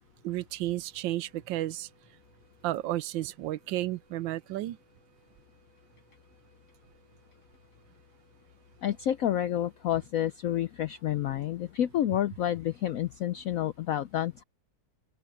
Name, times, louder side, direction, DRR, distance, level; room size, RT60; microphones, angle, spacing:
voice 1, 0.2-1.9 2.6-4.8, right 15 dB, 85° right, 1.3 m, -32 dB
Wind instrument woodwind instrument, 0.9-10.2, right 7 dB, 15° right, 5.3 m, -69 dB
voice 2, 8.8-14.4, left 11 dB, 80° left, 0.7 m, -29 dB
open air
omnidirectional pair, 2.0 m